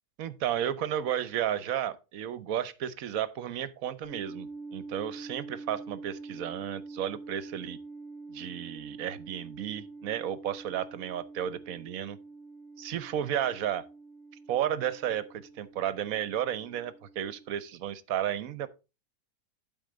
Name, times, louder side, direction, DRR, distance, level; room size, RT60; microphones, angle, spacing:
voice 1, 0.2-7.8 8.3-12.2 12.8-13.9 14.5-18.7, right 10 dB, 65° right, 1.1 m, -33 dB
sound 1, 4.0-17.5, right 3 dB, 30° left, 2.5 m, -46 dB
11.5 x 4.5 x 3.8 m
omnidirectional pair, 1.7 m